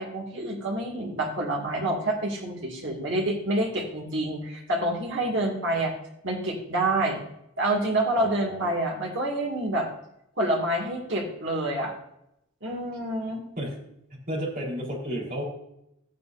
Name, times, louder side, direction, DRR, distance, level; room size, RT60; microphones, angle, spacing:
voice 1, 0.0-5.9 6.2-7.2 7.6-9.9 10.4-11.9 12.6-13.4, right 1 dB, 55° right, 0 dB, 2.4 m, -27 dB
voice 2, 8.2-8.8 13.6-13.8 14.1-15.4, equal, 40° right, -4 dB, 4.3 m, -32 dB
14.0 x 9.6 x 2.7 m, 0.81 s
head